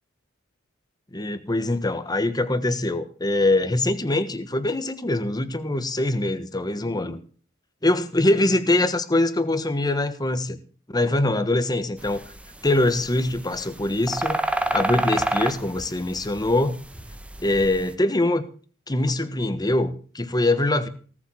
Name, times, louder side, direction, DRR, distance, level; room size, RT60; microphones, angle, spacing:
voice 1, 1.1-7.2 7.8-10.6 10.9-12.2 12.6-14.4 14.7-16.8 17.4-18.5 18.9-20.9, left 2 dB, 20° left, 11 dB, 1.4 m, -23 dB
sound 1, 12.0-17.9, right 1 dB, 5° right, 1.1 m, -28 dB
18.5 x 7.4 x 7.3 m, 0.41 s
head